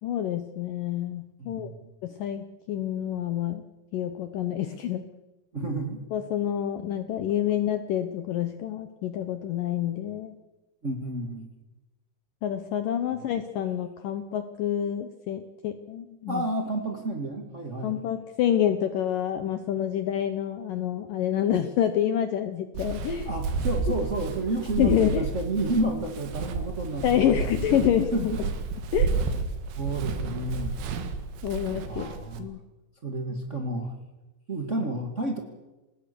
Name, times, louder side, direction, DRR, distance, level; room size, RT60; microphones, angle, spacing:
voice 1, 0.0-1.7 2.0-3.6 3.9-5.0 6.1-10.3 12.4-16.5 17.8-23.3 24.8-25.3 27.0-28.3 28.9-29.1 31.4-32.1 32.4-32.6, left 10 dB, 85° left, 9 dB, 1.9 m, -27 dB
voice 2, 1.4-1.9 5.5-6.0 10.8-11.5 13.1-13.3 16.3-17.9 23.2-27.2 28.1-28.4 29.8-30.7 31.9-32.5 33.0-33.9 34.5-35.4, right 2 dB, 60° right, 3 dB, 0.7 m, -31 dB
Walk footsteps, 22.7-32.4, right 4 dB, 85° right, 4.3 m, -31 dB
26.5 x 20.0 x 6.9 m, 1.1 s
omnidirectional pair, 5.4 m